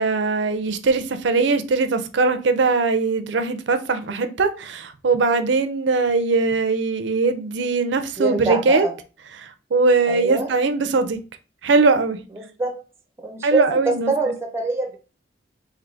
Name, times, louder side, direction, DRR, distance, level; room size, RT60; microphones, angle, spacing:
voice 1, 0.0-8.8 9.4-11.2 11.6-12.2 13.4-14.1, right 4 dB, 70° right, 0.5 m, -20 dB
voice 2, 8.2-8.9 10.1-10.5 12.4-12.7 13.2-15.0, right 2 dB, 15° right, 0.6 m, -24 dB
3.4 x 2.6 x 3.8 m
head